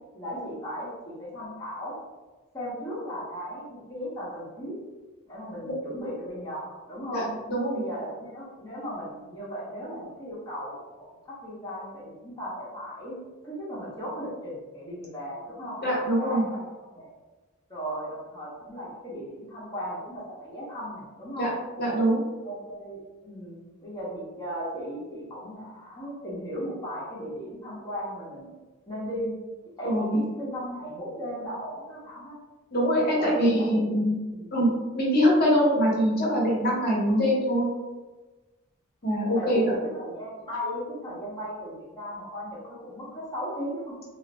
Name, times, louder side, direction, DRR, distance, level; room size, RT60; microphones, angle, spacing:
voice 1, 0.1-2.0 2.5-4.8 5.3-7.3 7.7-13.2 13.4-15.8 16.2-16.6 16.9-17.1 17.7-21.5 22.4-28.5 28.9-29.4 29.8-32.4 33.2-34.5 39.3-43.9, equal, 20° left, -8 dB, 0.9 m, -36 dB
voice 2, 7.1-7.8 15.8-16.4 21.4-21.5 21.8-22.2 29.8-30.2 32.7-34.2 34.5-37.7 39.0-39.7, equal, 45° left, -5 dB, 0.8 m, -23 dB
2.5 x 2.1 x 4.0 m, 1.2 s
head